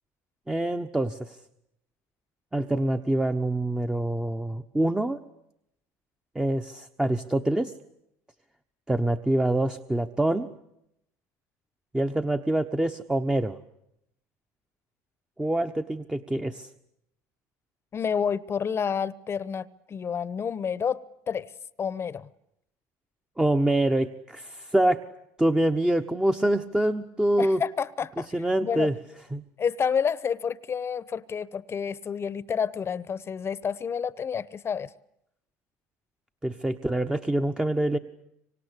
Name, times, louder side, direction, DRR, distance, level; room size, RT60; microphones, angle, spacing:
voice 1, 0.5-1.4 2.5-5.2 6.3-7.7 8.9-10.5 11.9-13.6 15.4-16.7 23.4-25.0 25.4-27.6 28.3-29.0 29.3-29.4 36.4-38.0, right 1 dB, 10° right, 1.1 m, -25 dB
voice 2, 17.9-21.5 21.8-22.3 27.4-28.3 28.6-28.9 29.6-34.9, left 7 dB, 30° left, 1.0 m, -29 dB
25.5 x 25.0 x 8.3 m
supercardioid pair, 95°, 8 cm